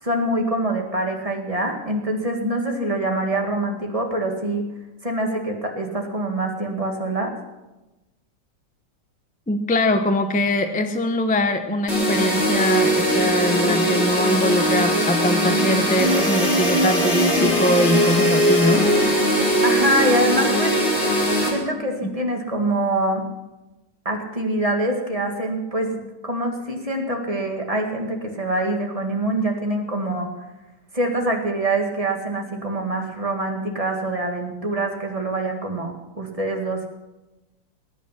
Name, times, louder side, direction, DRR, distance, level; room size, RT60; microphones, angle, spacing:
voice 1, 0.0-4.7 5.0-7.3 19.6-20.7 21.5-23.2 24.1-30.3 30.9-36.9, right 1 dB, 20° right, 2 dB, 2.0 m, -25 dB
voice 2, 9.5-18.8, left 1 dB, 10° left, 7 dB, 0.6 m, -22 dB
sound 1, 11.9-21.5, equal, 35° left, 4.2 m, -20 dB
20.0 x 9.2 x 5.9 m, 1.0 s
omnidirectional pair, 1.9 m